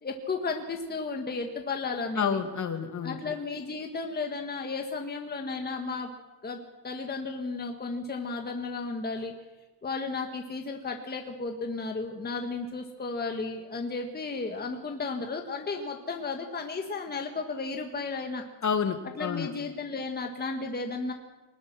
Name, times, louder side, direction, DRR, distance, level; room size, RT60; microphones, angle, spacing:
voice 1, 0.0-2.4 3.0-6.1 6.4-9.4 9.8-18.4 19.2-21.1, left 4 dB, 20° left, 3 dB, 1.8 m, -34 dB
voice 2, 2.2-3.3 18.6-19.5, left 6 dB, 40° left, 7 dB, 2.4 m, -29 dB
24.5 x 20.0 x 6.2 m, 1.2 s
cardioid pair, 140°, 46 cm